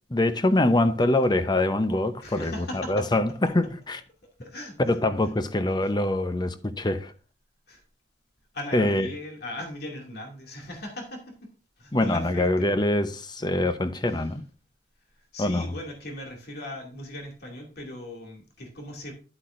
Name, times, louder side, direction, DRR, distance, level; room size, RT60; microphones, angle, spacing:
voice 1, 0.1-4.0 4.8-7.1 8.7-9.1 11.9-14.4 15.4-15.7, left 1 dB, 25° left, 0.7 m, -24 dB
voice 2, 2.2-3.0 4.2-5.0 5.8-5.9 7.7-7.8 8.5-11.5 11.8-12.8 14.1-14.3 15.1-19.1, left 1 dB, 60° left, 2.4 m, -39 dB
11.0 x 8.2 x 2.5 m
head